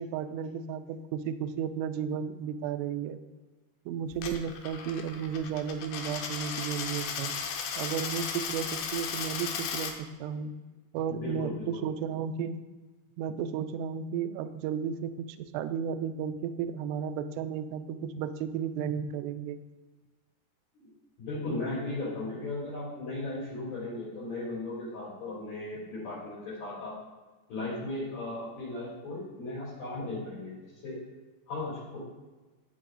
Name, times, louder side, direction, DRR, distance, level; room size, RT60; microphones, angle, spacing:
voice 1, 0.0-3.2 3.9-7.3 7.8-9.9 10.2-10.5 10.9-12.6 13.2-19.6, right 8 dB, 85° right, 9 dB, 2.5 m, -33 dB
Coin (dropping), 4.1-9.9, left 6 dB, 75° left, 2.7 m, -35 dB
voice 2, 11.1-11.8 20.7-20.9 21.2-27.0 27.5-31.0 31.5-32.0, left 2 dB, 50° left, -9 dB, 4.2 m, -36 dB
12.5 x 8.3 x 2.6 m, 1.2 s
omnidirectional pair, 5.2 m